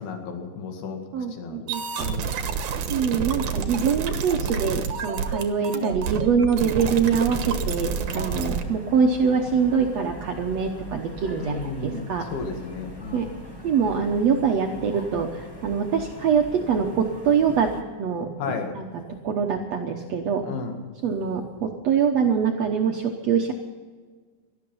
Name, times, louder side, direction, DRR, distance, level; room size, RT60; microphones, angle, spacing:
voice 1, 0.0-1.7 2.0-2.4 11.4-13.3 18.4-18.7 20.4-20.8, left 4 dB, 70° left, 4 dB, 3.9 m, -33 dB
voice 2, 1.1-2.1 2.9-12.3 13.1-13.3 13.6-17.7 18.0-18.3 18.7-18.9 19.2-20.4 21.0-23.5, right 6 dB, 90° right, 2 dB, 1.4 m, -24 dB
sound 1, 1.7-8.6, right 6 dB, 65° right, 2.1 m, -29 dB
sound 2, 6.8-17.8, equal, 20° left, 0.6 m, -40 dB
18.5 x 13.5 x 5.6 m, 1.5 s
omnidirectional pair, 4.7 m